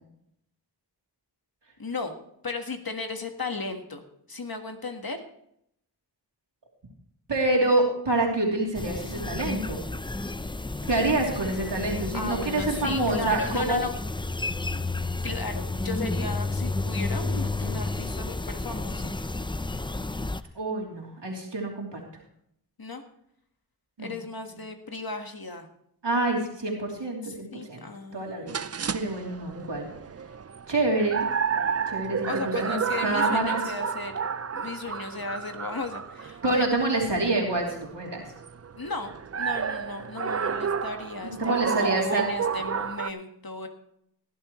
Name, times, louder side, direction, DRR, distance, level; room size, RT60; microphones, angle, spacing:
voice 1, 1.8-2.1 2.4-4.0 4.3-5.2 12.1-13.9 15.2-19.1 22.8-23.0 24.0-25.7 27.2-28.5 32.2-34.1 34.5-36.6 38.8-39.1 39.4-43.7, left 3 dB, 55° left, 5 dB, 1.6 m, -35 dB
voice 2, 7.3-9.8 10.9-13.9 20.5-22.0 24.0-24.1 26.0-27.8 28.1-28.6 28.9-29.9 30.7-31.3 31.9-33.7 36.4-38.3 41.4-42.3, right 2 dB, 90° right, -1 dB, 3.1 m, -27 dB
sound 1, 8.7-20.4, left 2 dB, 10° left, 0.5 m, -31 dB
sound 2, 28.5-43.1, right 6 dB, 40° right, 0.5 m, -31 dB
17.5 x 11.0 x 3.1 m, 0.73 s
wide cardioid pair, 40°, 41 cm